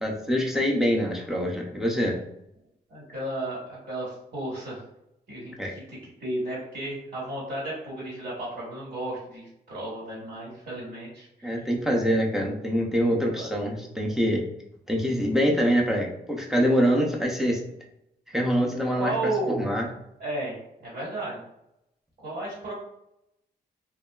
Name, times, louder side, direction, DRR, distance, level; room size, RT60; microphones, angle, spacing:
voice 1, 0.0-2.2 5.6-5.7 11.4-14.4 14.9-17.6 18.3-19.9, equal, ahead, -1 dB, 0.5 m, -25 dB
voice 2, 2.9-4.8 5.3-11.7 13.1-13.5 19.0-19.8 20.2-20.6 20.8-21.4 22.2-22.7, right 1 dB, 60° right, -8 dB, 1.3 m, -33 dB
2.7 x 2.2 x 2.3 m, 0.81 s
cardioid pair, 90°, 17 cm